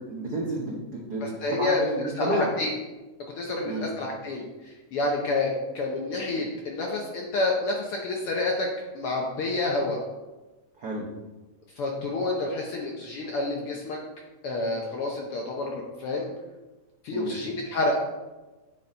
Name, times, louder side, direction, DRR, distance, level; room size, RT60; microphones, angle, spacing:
voice 1, 0.0-2.5 3.6-3.9 10.8-11.1 17.1-17.4, right 1 dB, 80° right, -3 dB, 0.8 m, -31 dB
voice 2, 1.2-2.7 3.4-8.7 8.9-10.0 11.8-14.0 14.4-16.3 17.0-18.0, left 2 dB, 70° left, 0 dB, 1.4 m, -29 dB
9.6 x 4.0 x 4.3 m, 1.1 s
omnidirectional pair, 3.4 m